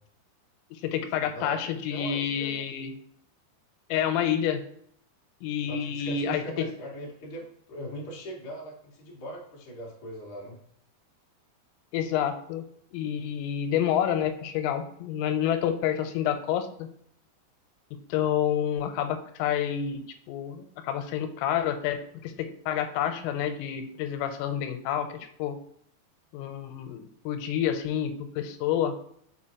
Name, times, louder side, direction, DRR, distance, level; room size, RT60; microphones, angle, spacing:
voice 1, 0.7-2.9 3.9-4.6 5.4-6.4 11.9-12.6 12.9-16.9 18.1-20.0 20.3-25.6 26.3-28.9, left 9 dB, 90° left, 8 dB, 3.3 m, -28 dB
voice 2, 1.2-2.7 5.7-10.6, equal, 45° left, -4 dB, 1.9 m, -40 dB
6.9 x 4.9 x 2.9 m, 0.68 s
omnidirectional pair, 5.8 m